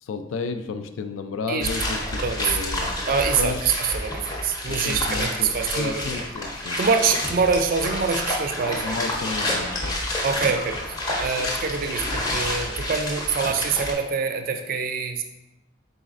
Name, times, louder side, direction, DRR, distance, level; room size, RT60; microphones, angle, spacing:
voice 1, 0.0-3.0 3.4-3.6 4.7-6.8 8.8-9.9, left 4 dB, 85° left, 8 dB, 0.4 m, -32 dB
sound 1, 1.6-13.9, left 1 dB, 20° left, 0.6 m, -29 dB
voice 2, 2.2-2.6 3.1-6.0 6.8-8.9 10.2-15.2, right 5 dB, 45° right, 6 dB, 0.3 m, -25 dB
4.1 x 3.9 x 2.4 m, 0.92 s
head